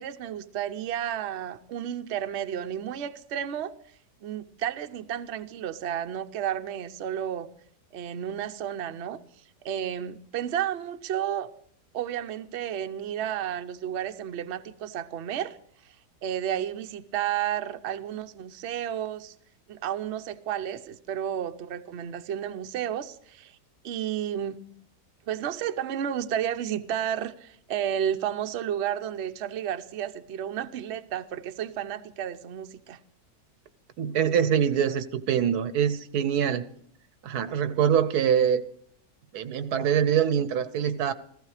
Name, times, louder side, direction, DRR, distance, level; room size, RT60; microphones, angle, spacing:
voice 1, 0.0-3.7 4.2-7.5 7.9-9.2 9.6-11.5 11.9-15.6 16.2-19.3 19.7-23.5 23.8-24.6 25.3-33.0, right 10 dB, 55° right, 0.9 m, -32 dB
voice 2, 34.0-36.7 37.2-38.6 39.3-41.1, right 8 dB, 85° right, 1.3 m, -24 dB
15.5 x 14.5 x 4.9 m
omnidirectional pair, 1.6 m